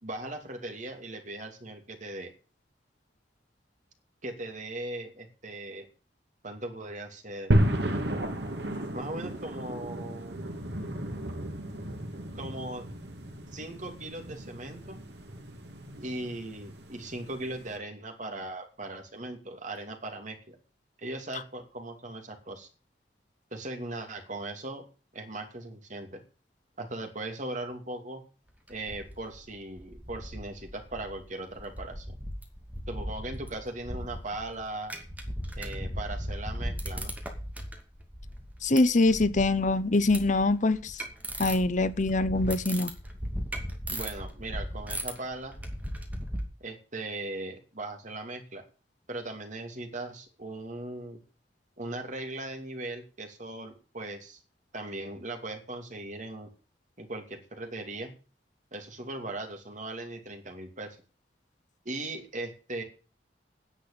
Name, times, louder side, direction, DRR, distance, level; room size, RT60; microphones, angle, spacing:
voice 1, 0.0-2.3 4.2-5.9 6.4-7.5 8.9-10.4 12.3-12.9 13.5-15.0 16.0-20.6 21.0-22.7 23.5-24.8 25.1-26.2 26.8-28.2 28.7-32.2 32.9-34.9 35.6-37.1 43.9-45.6 46.6-48.6 49.1-51.2 51.8-54.4 54.7-56.5 57.0-58.1 58.7-61.0 61.8-62.8, right 2 dB, 45° right, 2.7 m, -38 dB
sound 1, 7.5-17.8, equal, 70° right, 2.1 m, -33 dB
sound 2, 28.7-29.5 29.8-31.3 31.5-46.4, equal, 10° right, 2.4 m, -38 dB
voice 2, 38.6-41.0 41.4-42.9, left 2 dB, 45° left, 0.8 m, -24 dB
10.0 x 7.9 x 8.6 m
head